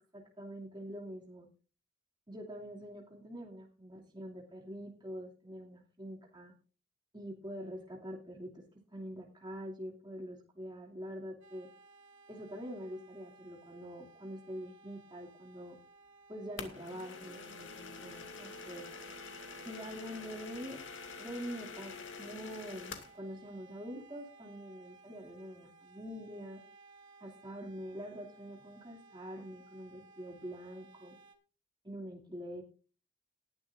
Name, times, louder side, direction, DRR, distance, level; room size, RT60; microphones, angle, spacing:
voice 1, 0.1-1.5 2.3-6.5 7.1-8.6 8.9-11.7 12.3-15.8 16.3-18.8 19.6-20.8 21.2-26.6 27.2-31.2 31.8-32.6, equal, 25° right, -1 dB, 2.6 m, -45 dB
sound 1, 11.4-31.4, right 3 dB, 70° right, 2.3 m, -59 dB
sound 2, 16.6-23.2, left 4 dB, 70° left, 2.3 m, -47 dB
19.5 x 11.0 x 2.6 m, 0.34 s
head